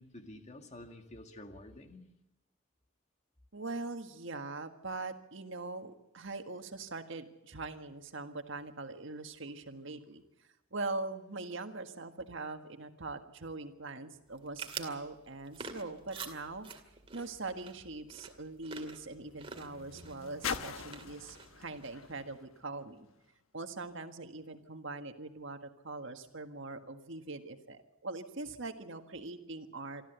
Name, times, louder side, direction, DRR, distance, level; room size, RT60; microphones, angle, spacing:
voice 1, 0.0-2.1, left 1 dB, 35° left, 5 dB, 2.1 m, -50 dB
voice 2, 3.5-10.2 10.7-16.7 17.1-23.1 23.5-30.0, right 3 dB, 65° right, 7 dB, 1.7 m, -42 dB
sound 1, 14.3-22.1, right 5 dB, 25° right, 2.3 m, -48 dB
sound 2, 16.9-23.4 24.2-24.3, left 6 dB, 80° left, 1.2 m, -45 dB
25.5 x 13.5 x 8.1 m, 0.93 s
head